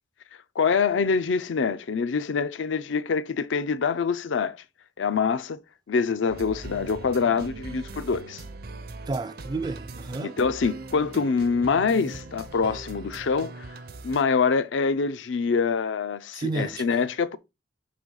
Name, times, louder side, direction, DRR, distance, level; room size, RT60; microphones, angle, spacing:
voice 1, 0.6-4.6 5.0-5.6 5.9-8.4 10.2-13.7 14.0-17.4, left 5 dB, 80° left, 0.5 m, -25 dB
sound 1, 6.3-14.2, right 2 dB, 55° right, 0.7 m, -41 dB
voice 2, 9.1-10.4 16.4-16.8, right 3 dB, 20° right, 0.3 m, -31 dB
5.9 x 3.9 x 4.7 m
head